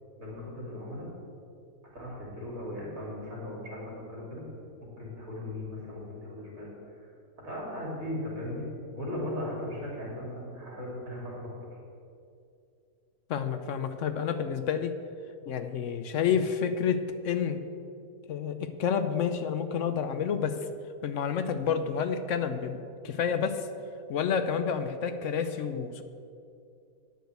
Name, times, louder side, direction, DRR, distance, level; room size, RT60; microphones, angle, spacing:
voice 1, 0.2-1.1 1.9-4.4 5.0-7.1 7.4-8.7 8.9-11.7, left 1 dB, 65° right, -5 dB, 3.5 m, -38 dB
voice 2, 13.3-14.9 15.5-17.6 18.3-20.6 21.0-23.7 24.1-26.0, left 7 dB, 65° left, 10 dB, 0.9 m, -29 dB
9.3 x 6.5 x 7.9 m, 2.5 s
omnidirectional pair, 1.6 m